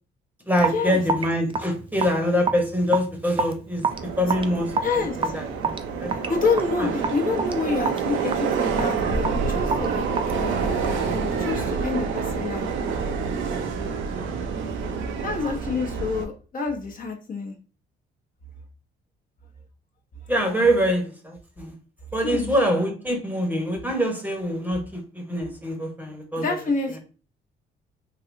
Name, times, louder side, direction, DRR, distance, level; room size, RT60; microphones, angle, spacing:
voice 1, 0.4-6.3 6.8-6.9 20.3-21.7 22.1-26.4, equal, 10° right, 0.8 m, -25 dB
Raindrop / Drip, 0.6-11.1, right 4 dB, 25° right, 0.4 m, -30 dB
Subway metro underground, 3.9-16.2, right 5 dB, 80° right, 0.5 m, -27 dB
voice 2, 4.8-5.3 6.1-12.7 15.2-17.5 22.2-22.5 26.4-27.0, left 4 dB, 45° left, 0.8 m, -28 dB
3.2 x 2.7 x 2.5 m
cardioid pair, 90°, 20 cm